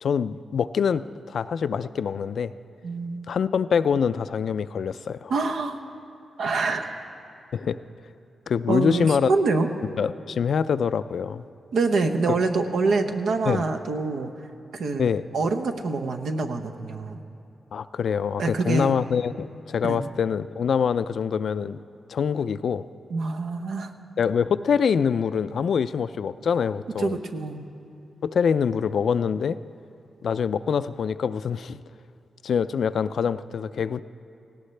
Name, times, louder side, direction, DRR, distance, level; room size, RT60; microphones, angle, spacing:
voice 1, 0.0-2.5 3.3-5.3 7.5-7.8 8.5-9.3 10.0-11.4 12.3-12.4 13.5-13.7 15.0-15.2 17.7-21.8 22.1-22.9 24.2-27.2 28.2-29.6 30.2-31.8 32.4-34.0, left 6 dB, 70° left, 14 dB, 0.3 m, -25 dB
voice 2, 2.8-3.3 5.3-5.8 6.4-7.0 8.7-9.7 11.7-14.3 14.7-15.1 15.3-17.2 18.4-19.0 19.8-20.0 23.1-23.9 27.0-27.6, right 3 dB, 90° right, 5 dB, 0.9 m, -25 dB
18.0 x 17.0 x 3.3 m, 2.6 s
wide cardioid pair, 120°, 0 cm